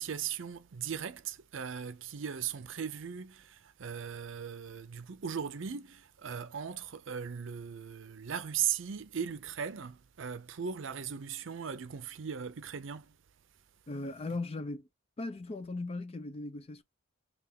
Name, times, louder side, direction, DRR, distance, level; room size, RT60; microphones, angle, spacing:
voice 1, 0.0-13.2, right 8 dB, 70° right, 0.5 m, -38 dB
voice 2, 13.9-14.9 15.2-16.8, left 2 dB, 30° left, 0.4 m, -38 dB
3.5 x 2.4 x 3.6 m
head